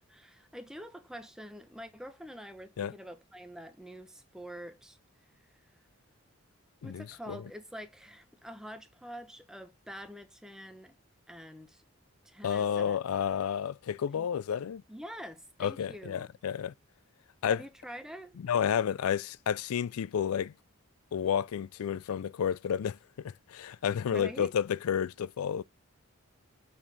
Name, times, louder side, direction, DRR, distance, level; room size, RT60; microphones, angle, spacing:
voice 1, 0.1-5.0 6.8-11.0 11.3-11.8 12.2-13.0 14.1-14.3 14.9-16.3 17.5-18.4 24.1-24.5, equal, 5° right, 1.0 m, -46 dB
voice 2, 6.8-7.4 12.4-14.8 15.6-16.7 17.4-17.6 18.4-20.5 21.1-25.6, left 8 dB, 85° left, 0.4 m, -31 dB
6.3 x 6.2 x 3.5 m
head